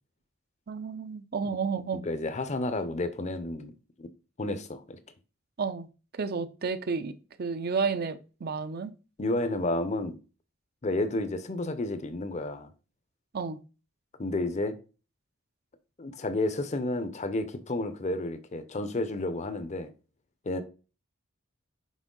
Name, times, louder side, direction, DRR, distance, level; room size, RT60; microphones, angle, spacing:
voice 1, 0.7-2.1 5.6-5.9 6.2-7.1 7.4-8.9 13.3-13.6, right 5 dB, 50° right, 0.5 m, -31 dB
voice 2, 2.0-3.7 4.0-4.1 4.4-5.0 9.2-10.2 10.8-12.7 14.2-14.7 16.0-19.9 20.5-20.6, left 2 dB, 35° left, 0.6 m, -31 dB
6.2 x 4.4 x 3.8 m
head